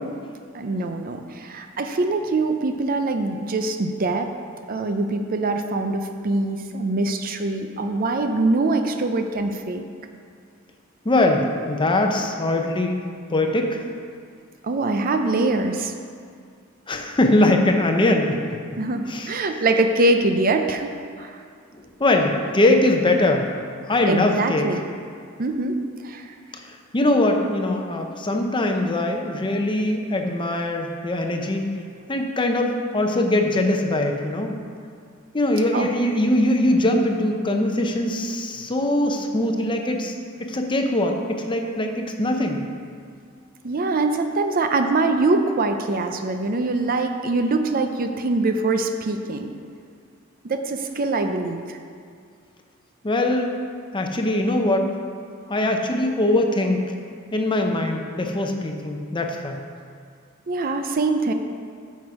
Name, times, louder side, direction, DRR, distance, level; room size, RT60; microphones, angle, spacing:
voice 1, 0.5-4.3 4.7-9.9 14.6-15.9 18.8-21.4 24.1-24.8 25.4-25.8 26.0-26.3 35.7-35.9 43.6-49.5 50.4-51.8 60.5-61.3, right 2 dB, 45° right, 6 dB, 0.5 m, -23 dB
voice 2, 11.0-13.0 13.3-13.8 16.9-18.4 19.1-19.3 21.7-23.5 23.9-24.6 26.5-31.6 32.1-34.6 35.3-40.1 40.4-42.6 53.0-53.5 53.9-54.9 55.5-56.8 57.3-59.6, left 1 dB, 25° left, 3 dB, 0.7 m, -22 dB
9.1 x 6.2 x 4.8 m, 2.2 s
head